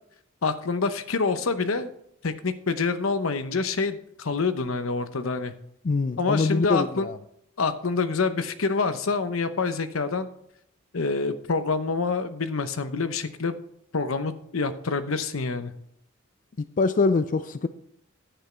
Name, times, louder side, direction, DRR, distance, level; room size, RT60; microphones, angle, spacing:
voice 1, 0.4-1.9 2.2-5.5 6.2-7.1 7.6-10.3 10.9-13.5 13.9-15.7, left 4 dB, 80° left, 11 dB, 0.8 m, -26 dB
voice 2, 5.8-7.2 16.6-17.7, left 3 dB, 40° left, 12 dB, 0.4 m, -24 dB
10.0 x 8.2 x 4.4 m, 0.73 s
head